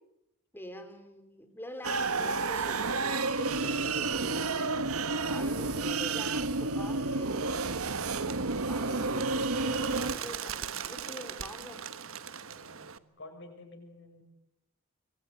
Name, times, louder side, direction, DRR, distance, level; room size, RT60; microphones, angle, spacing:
voice 1, 0.5-4.8 5.3-7.6 8.3-11.8, equal, 10° left, 7 dB, 3.8 m, -45 dB
sound 1, 1.8-10.1, right 3 dB, 90° right, 1.5 m, -30 dB
Bird, 7.7-13.0, right 7 dB, 70° right, 1.3 m, -41 dB
voice 2, 12.5-14.2, left 2 dB, 55° left, 5 dB, 6.8 m, -50 dB
26.5 x 23.0 x 9.5 m, 0.85 s
head